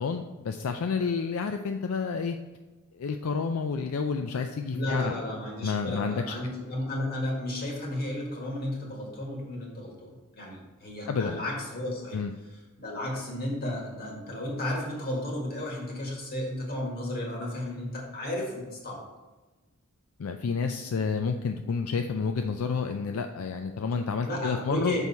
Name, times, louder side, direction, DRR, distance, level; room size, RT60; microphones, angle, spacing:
voice 1, 0.0-2.4 3.0-5.1 5.6-6.3 11.1-11.4 12.1-12.3 20.2-24.9, left 5 dB, 75° left, 6 dB, 0.4 m, -30 dB
voice 2, 4.7-12.2 12.8-19.0 24.3-25.1, left 1 dB, 45° left, -2 dB, 1.9 m, -33 dB
6.3 x 5.4 x 4.2 m, 1.2 s
head